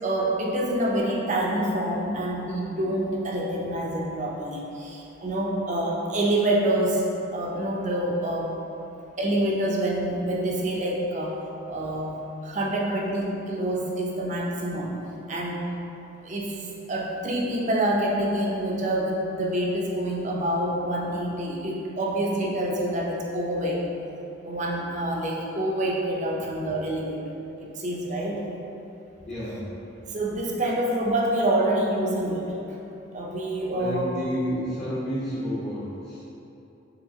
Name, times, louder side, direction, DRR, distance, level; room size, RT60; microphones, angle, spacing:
voice 1, 0.0-7.0 7.3-8.5 9.2-11.4 11.7-12.1 12.4-15.0 15.3-15.7 16.2-23.9 24.4-27.3 27.8-28.4 30.1-32.5 33.1-34.1, right 1 dB, 35° right, -3 dB, 0.5 m, -27 dB
voice 2, 29.3-29.7 33.7-36.2, equal, 35° left, -11 dB, 0.8 m, -31 dB
5.7 x 2.8 x 2.8 m, 2.9 s
head